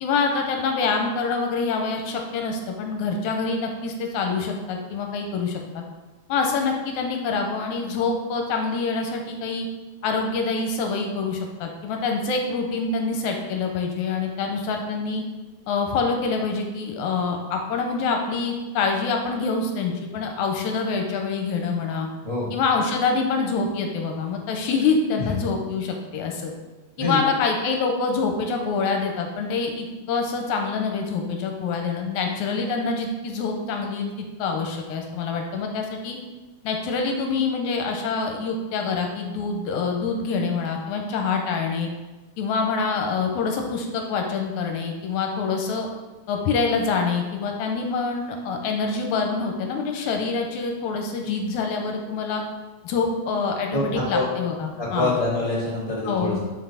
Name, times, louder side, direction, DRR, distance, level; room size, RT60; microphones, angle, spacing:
voice 1, 0.0-5.8 6.3-9.7 10.0-15.2 15.7-22.1 22.5-26.5 27.0-34.1 34.4-36.2 36.6-41.9 42.4-45.9 46.3-52.4 52.8-55.2 56.0-56.4, left 4 dB, 85° left, 3 dB, 2.0 m, -26 dB
voice 2, 53.7-54.3 54.8-56.4, left 2 dB, 65° right, -8 dB, 0.3 m, -25 dB
5.0 x 4.0 x 5.6 m, 1.2 s
omnidirectional pair, 3.4 m